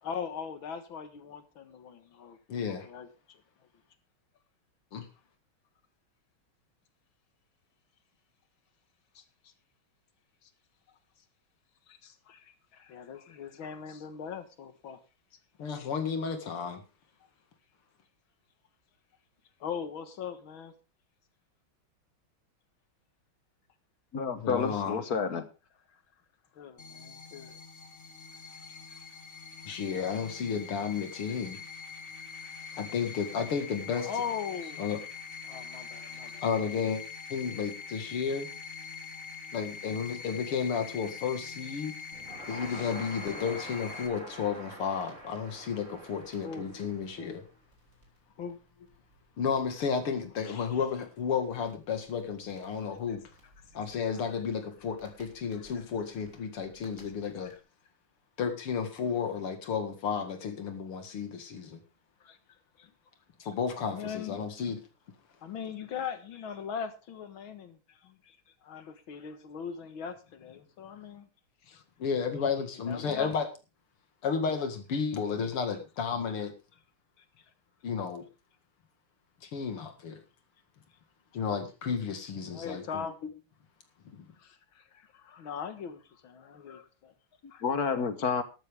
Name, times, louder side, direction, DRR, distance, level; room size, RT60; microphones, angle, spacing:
voice 1, 0.0-2.4 2.6-3.4 9.1-9.5 10.4-10.5 11.9-15.0 15.7-15.9 19.6-20.7 25.9-26.0 26.5-27.6 28.5-29.1 29.7-29.8 30.2-30.3 32.3-32.8 34.0-35.1 35.4-36.9 42.7-42.9 43.3-43.6 46.4-46.7 47.2-47.4 48.4-48.6 50.4-50.7 52.9-53.2 54.1-54.3 55.5-55.6 57.4-57.6 62.2-62.4 62.8-62.9 63.4-63.5 63.9-64.7 65.4-68.4 68.6-71.3 71.6-71.8 72.5-73.3 77.2-77.5 81.4-81.6 82.5-83.2 84.4-87.1 87.5-87.6, left 7 dB, 70° left, 10 dB, 2.2 m, -41 dB
voice 2, 2.5-2.9 4.9-5.1 15.6-16.8 24.4-25.0 29.6-31.6 32.8-34.1 34.8-35.0 36.4-37.0 37.3-38.5 39.5-41.9 42.5-47.4 49.4-53.2 53.7-57.5 58.4-61.8 63.4-64.8 72.0-73.5 74.2-76.5 77.8-78.2 79.4-80.2 81.3-83.1 84.1-84.3, left 6 dB, 90° left, 6 dB, 2.8 m, -32 dB
voice 3, 24.1-25.5 87.6-88.4, left 5 dB, 50° left, 11 dB, 1.5 m, -29 dB
sound 1, 26.8-44.1, left 5 dB, 30° left, 1.7 m, -44 dB
Crackle, 42.1-57.6, right 1 dB, 35° right, 3.4 m, -50 dB
13.0 x 12.5 x 3.5 m, 0.30 s
omnidirectional pair, 2.3 m